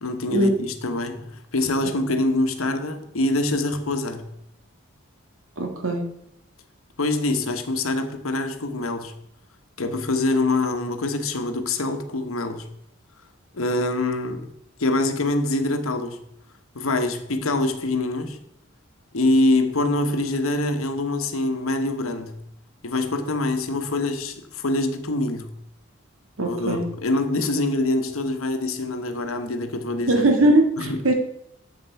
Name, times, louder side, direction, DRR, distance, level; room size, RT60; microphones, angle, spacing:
voice 1, 0.0-4.3 7.0-9.1 9.8-12.7 13.5-14.5 14.8-16.2 16.7-18.4 19.1-22.4 22.8-25.6 26.4-30.2 30.8-31.0, left 2 dB, 90° left, 1.0 m, -25 dB
voice 2, 5.6-6.1 26.4-26.9 30.1-31.1, right 1 dB, 85° right, 1.7 m, -20 dB
7.6 x 7.4 x 5.6 m
head